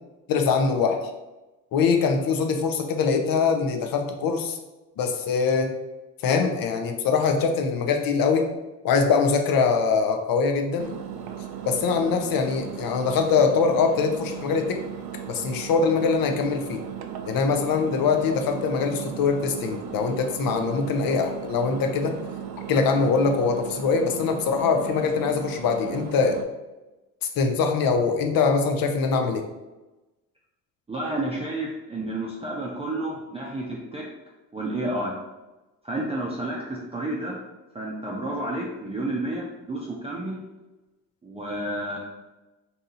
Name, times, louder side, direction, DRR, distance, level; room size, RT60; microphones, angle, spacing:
voice 1, 0.3-1.1 1.7-4.6 5.0-5.7 6.2-8.5 8.8-10.9 11.6-14.8 15.3-16.8 17.3-22.2 22.7-26.4 27.2-29.4, left 5 dB, 55° left, 5 dB, 0.7 m, -23 dB
Engine, 10.8-26.4, right 9 dB, 60° right, 0.5 m, -37 dB
voice 2, 30.9-34.1 34.5-35.2 35.8-37.4 37.7-40.4 41.2-42.0, right 1 dB, 15° right, -4 dB, 0.6 m, -30 dB
2.8 x 2.6 x 3.8 m, 1.1 s
supercardioid pair, 60°, 42 cm